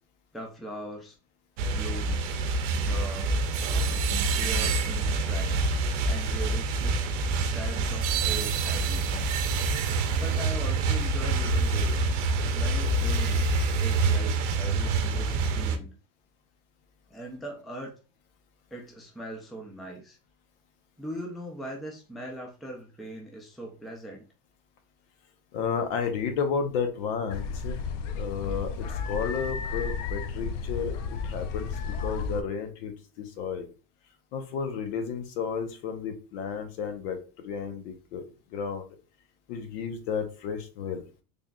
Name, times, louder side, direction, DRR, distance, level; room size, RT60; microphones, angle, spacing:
voice 1, 0.3-1.2 1.7-3.3 3.6-5.7 6.0-7.0 7.4-9.2 9.9-12.1 12.5-16.0 17.1-17.9 18.7-20.2 21.0-24.2, right 1 dB, ahead, 0 dB, 0.4 m, -41 dB
sound 1, 1.6-15.8, right 3 dB, 85° right, 0.7 m, -26 dB
voice 2, 25.5-27.8 28.1-31.7 32.0-32.9 33.2-33.7 34.3-38.2 38.5-38.9 39.5-41.0, left 6 dB, 65° left, 6 dB, 0.9 m, -32 dB
sound 2, 27.3-32.4, left 5 dB, 85° left, 0.6 m, -33 dB
3.8 x 3.5 x 2.3 m, 0.34 s
supercardioid pair, 145°, 36 cm